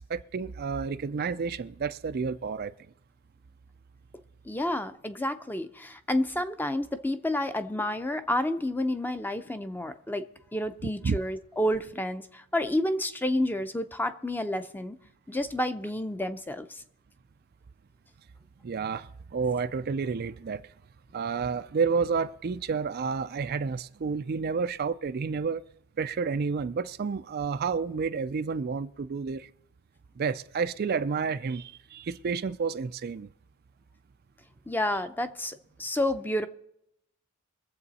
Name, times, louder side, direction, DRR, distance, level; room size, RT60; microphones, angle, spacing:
voice 1, 0.0-2.7 11.0-11.2 18.6-20.6 21.1-25.6 26.0-29.5 30.2-33.3, right 5 dB, 45° right, 0.4 m, -30 dB
voice 2, 4.4-10.2 10.5-15.0 15.3-16.8 34.7-36.5, left 1 dB, 10° left, 0.6 m, -30 dB
23.0 x 7.7 x 4.2 m
head